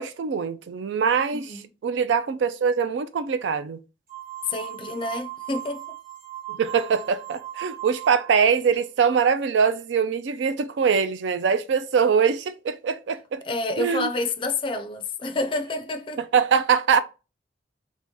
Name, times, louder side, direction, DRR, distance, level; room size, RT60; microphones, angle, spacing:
voice 1, 0.0-3.8 6.5-13.4 13.8-14.1 16.2-17.0, right 6 dB, 85° right, 0.4 m, -23 dB
voice 2, 1.3-1.7 4.5-5.8 13.5-16.2, left 2 dB, 30° left, 0.4 m, -29 dB
sound 1, 4.1-8.5, right 14 dB, 50° right, 1.1 m, -38 dB
3.0 x 2.8 x 3.5 m
head